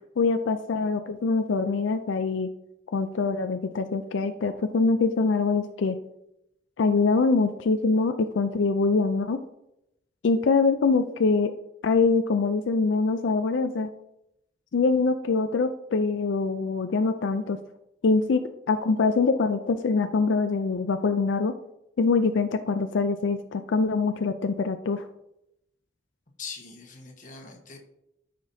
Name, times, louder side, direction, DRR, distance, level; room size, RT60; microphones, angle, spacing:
voice 1, 0.2-2.5 2.9-6.0 6.8-9.4 10.2-11.5 11.8-13.9 14.7-17.6 18.0-21.5 22.0-25.0, left 4 dB, 85° left, 8 dB, 0.4 m, -24 dB
voice 2, 26.4-27.8, left 5 dB, 45° left, 2 dB, 1.3 m, -41 dB
13.0 x 5.1 x 2.7 m, 0.85 s
head